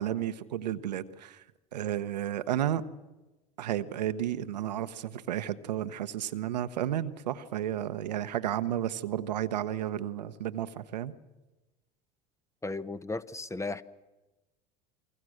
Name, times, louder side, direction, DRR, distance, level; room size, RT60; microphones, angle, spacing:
voice 1, 0.0-1.4 1.7-2.8 3.6-11.1, right 11 dB, 85° right, 1.0 m, -32 dB
voice 2, 12.6-13.8, left 3 dB, 15° left, 1.0 m, -35 dB
29.0 x 22.5 x 6.4 m
hypercardioid pair, 75°, 21 cm